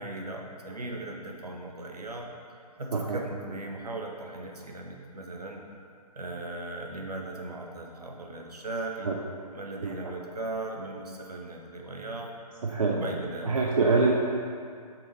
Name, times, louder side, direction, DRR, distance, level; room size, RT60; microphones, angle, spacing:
voice 1, 0.0-2.3 2.8-5.6 6.1-9.1 9.5-12.3 12.9-13.8, right 2 dB, 70° right, 1 dB, 0.9 m, -38 dB
voice 2, 9.8-10.1 12.6-13.0 13.4-14.1, right 4 dB, 55° right, -1 dB, 0.5 m, -25 dB
5.5 x 4.1 x 4.1 m, 2.3 s
figure-of-eight pair, 135°, 21 cm